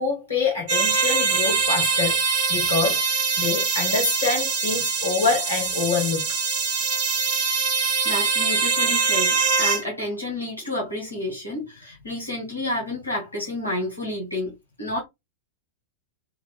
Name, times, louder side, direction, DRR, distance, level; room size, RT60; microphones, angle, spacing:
voice 1, 0.0-2.2 2.5-6.3, left 4 dB, 65° left, 2.1 m, -25 dB
sound 1, 0.7-9.8, right 5 dB, 50° right, 1.5 m, -23 dB
voice 2, 8.0-14.5 14.8-15.0, left 1 dB, 85° left, 2.0 m, -30 dB
4.7 x 3.1 x 2.3 m
figure-of-eight pair, 90°, 0 cm